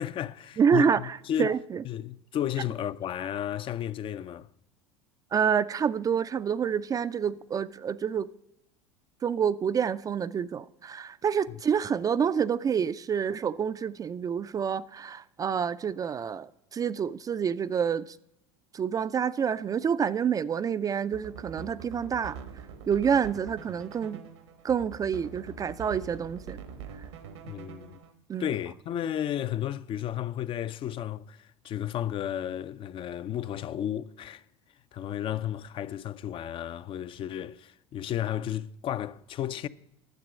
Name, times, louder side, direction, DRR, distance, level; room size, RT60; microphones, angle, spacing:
voice 1, 0.0-1.5 1.8-4.5 11.5-11.6 27.4-28.0 28.4-34.4 34.9-39.7, left 10 dB, 40° left, 0.4 m, -33 dB
voice 2, 0.6-1.8 5.3-8.3 9.2-18.1 18.7-22.4 22.9-24.2 24.6-26.6 28.3-28.5, right 7 dB, 25° right, 0.3 m, -28 dB
sound 1, 21.0-28.1, right 7 dB, 75° right, 1.2 m, -44 dB
10.5 x 7.4 x 6.2 m
hypercardioid pair, 80°, 14 cm